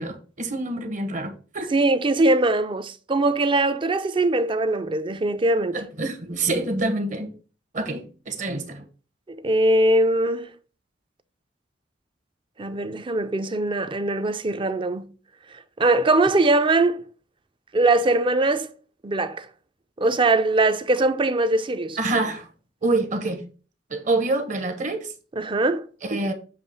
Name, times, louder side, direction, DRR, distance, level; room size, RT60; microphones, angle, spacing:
voice 1, 0.0-1.7 5.7-7.3 7.7-8.9 22.0-22.5 22.8-23.5 23.9-25.1 26.0-26.3, right 2 dB, 45° right, 1.0 m, -26 dB
voice 2, 1.7-5.8 9.3-10.5 12.6-15.1 15.8-17.0 17.7-18.7 19.0-19.5 20.0-22.0 25.4-25.9, right 2 dB, 25° right, 0.4 m, -21 dB
7.3 x 2.8 x 5.4 m
head